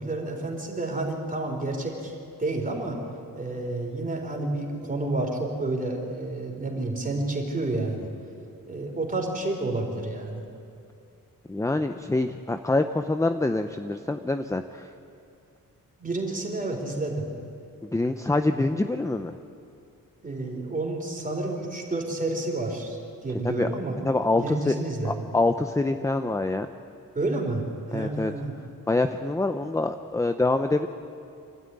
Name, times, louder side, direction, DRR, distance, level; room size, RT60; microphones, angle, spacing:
voice 1, 0.0-2.1 2.4-3.0 3.3-8.1 8.7-10.4 16.0-17.3 18.5-18.6 20.2-24.0 24.4-25.1 27.1-28.5, right 2 dB, 25° right, 1 dB, 3.9 m, -30 dB
voice 2, 11.5-14.9 17.9-19.4 23.4-23.7 24.0-24.8 25.0-26.7 27.9-28.3 28.9-30.9, left 2 dB, 10° left, 8 dB, 0.6 m, -25 dB
27.5 x 12.5 x 9.6 m, 2.5 s
wide cardioid pair, 140°, 34 cm